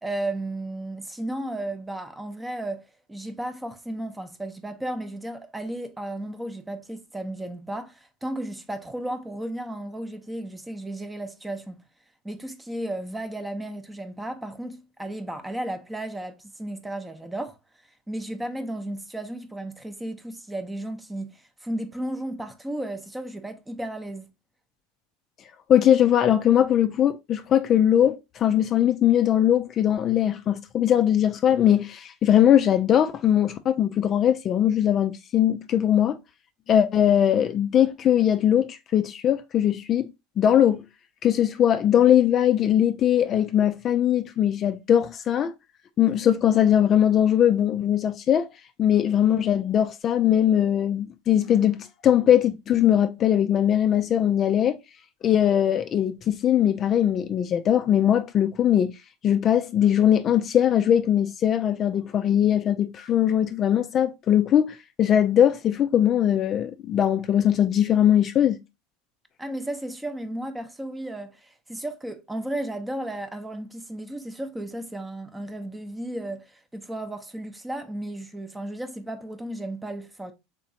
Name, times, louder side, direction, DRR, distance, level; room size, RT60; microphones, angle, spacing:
voice 1, 0.0-2.8 3.1-11.8 12.2-17.6 18.1-24.3 69.4-80.3, right 1 dB, 10° right, 0.6 m, -34 dB
voice 2, 25.7-36.2 36.7-40.1 40.4-40.8 41.2-45.5 46.0-48.5 48.8-54.8 55.2-58.9 59.2-68.6, left 10 dB, 40° left, 0.3 m, -20 dB
3.7 x 3.0 x 2.7 m
hypercardioid pair, 90°, 0 cm